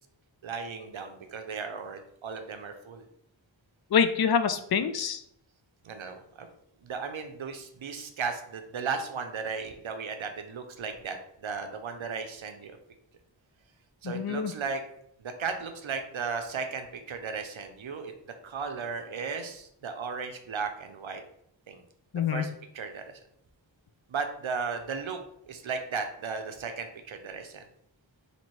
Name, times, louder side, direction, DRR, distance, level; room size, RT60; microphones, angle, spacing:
voice 1, 0.4-3.0 5.8-6.5 6.8-12.8 14.0-14.8 15.2-18.1 18.4-21.2 21.7-21.8 22.3-22.5 22.7-23.1 24.1-25.2 25.5-27.6, right 5 dB, 90° right, 6 dB, 0.6 m, -35 dB
voice 2, 3.9-5.2 14.0-14.5 22.1-22.5, left 7 dB, 55° left, 10 dB, 0.5 m, -26 dB
4.3 x 2.9 x 3.1 m, 0.71 s
wide cardioid pair, 45°, 46 cm